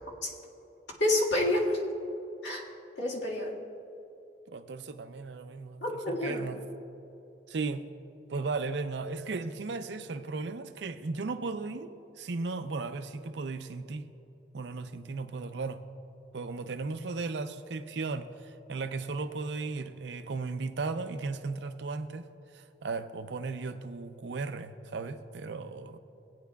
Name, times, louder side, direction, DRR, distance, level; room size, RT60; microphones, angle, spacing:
voice 1, 1.0-1.8 2.4-2.6 3.0-3.5 5.8-6.5, left 1 dB, 90° left, -3 dB, 1.8 m, -28 dB
voice 2, 4.5-6.6 7.5-7.8 8.3-14.1 14.5-15.8 16.3-22.2 22.5-26.0, right 3 dB, 75° right, 9 dB, 0.5 m, -36 dB
17.0 x 9.4 x 2.3 m, 2.8 s
head